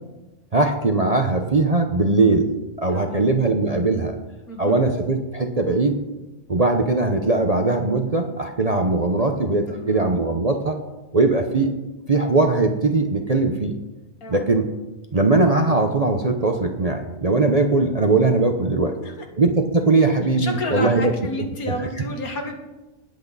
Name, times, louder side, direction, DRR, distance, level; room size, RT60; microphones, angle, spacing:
voice 1, 0.5-2.5 2.8-4.1 4.6-6.0 6.5-10.8 11.1-11.7 12.1-13.7 14.3-14.7 15.1-18.9 19.4-21.1, right 3 dB, 30° right, 4 dB, 0.7 m, -20 dB
voice 2, 2.9-3.3 4.5-4.8 9.7-10.1 14.2-14.4 18.7-19.3 20.4-22.6, left 1 dB, 70° left, 3 dB, 2.3 m, -31 dB
19.5 x 8.3 x 4.1 m, 1.1 s
omnidirectional pair, 1.6 m